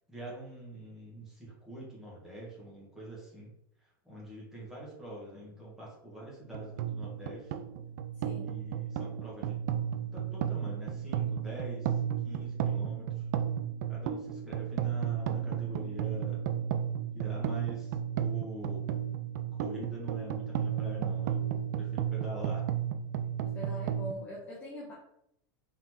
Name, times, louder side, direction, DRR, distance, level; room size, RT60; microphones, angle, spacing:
voice 1, 0.1-3.5 3.8-7.6 8.4-9.6 10.1-11.9 12.2-13.1 13.9-16.4 17.1-18.9 19.5-21.4 21.7-22.6, right 1 dB, 5° right, -6 dB, 1.3 m, -44 dB
sound 1, 6.5-24.1, right 9 dB, 50° right, 0.3 m, -33 dB
voice 2, 8.2-8.6 23.4-24.9, equal, 15° left, -5 dB, 0.6 m, -42 dB
3.9 x 3.8 x 3.0 m, 0.77 s
supercardioid pair, 180°, 12 cm